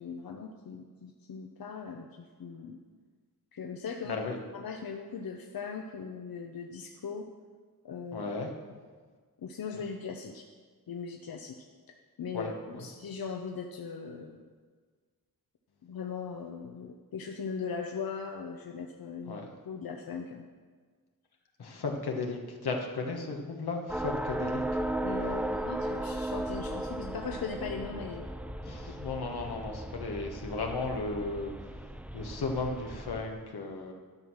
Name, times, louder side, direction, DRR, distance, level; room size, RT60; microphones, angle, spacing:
voice 1, 0.0-2.8 3.5-4.2 4.5-7.3 7.8-8.3 9.4-10.4 10.9-11.6 12.2-14.4 15.8-20.4 25.0-28.3 28.9-29.0, left 5 dB, 70° left, 3 dB, 0.8 m, -39 dB
voice 2, 8.1-8.5 12.3-12.9 19.3-19.5 21.6-24.8 28.6-31.5 32.1-33.9, left 3 dB, 85° left, 2 dB, 1.4 m, -35 dB
sound 1, 23.9-33.3, right 1 dB, 5° right, 0.5 m, -36 dB
12.0 x 5.7 x 6.2 m, 1.6 s
cardioid pair, 65°, 37 cm